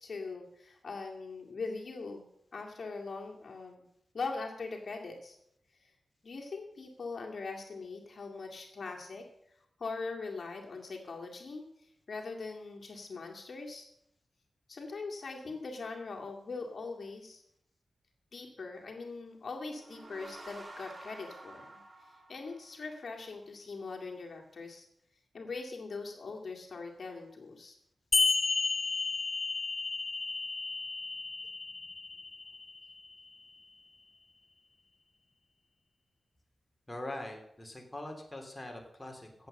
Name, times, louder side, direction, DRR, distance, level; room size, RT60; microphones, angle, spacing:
voice 1, 0.0-2.2 2.5-3.8 4.1-5.4 6.2-9.3 9.8-11.6 12.1-13.8 14.7-17.4 18.3-21.8 22.3-24.9 25.3-27.7, left 4 dB, 60° left, 1 dB, 2.2 m, -41 dB
sound 1, 19.6-23.1, right 2 dB, 30° right, 3.6 m, -50 dB
sound 2, 28.1-33.1, left 3 dB, 45° left, 0.4 m, -32 dB
voice 2, 36.9-39.5, left 1 dB, 15° left, 2 dB, 3.0 m, -43 dB
16.0 x 7.9 x 6.5 m, 0.74 s
cardioid pair, 70°, 0 cm